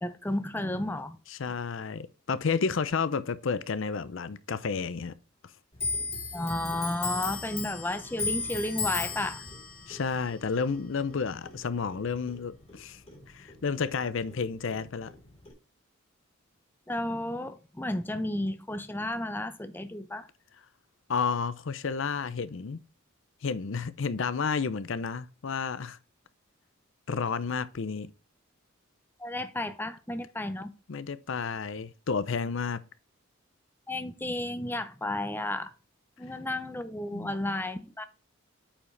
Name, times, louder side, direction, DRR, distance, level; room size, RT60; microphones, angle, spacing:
voice 1, 0.0-1.2 6.3-9.4 16.9-20.3 29.2-30.7 33.9-35.7 36.2-38.0, left 1 dB, 10° left, 0.6 m, -32 dB
voice 2, 0.6-0.9 1.3-5.2 9.9-13.0 13.3-15.1 21.1-22.8 23.4-26.0 27.1-28.1 30.9-32.8 37.1-37.6, left 5 dB, 60° left, 0.5 m, -31 dB
Clock, 5.8-12.8 13.1-14.4 14.7-15.5, left 4 dB, 30° left, 2.6 m, -36 dB
8.6 x 4.9 x 3.2 m
head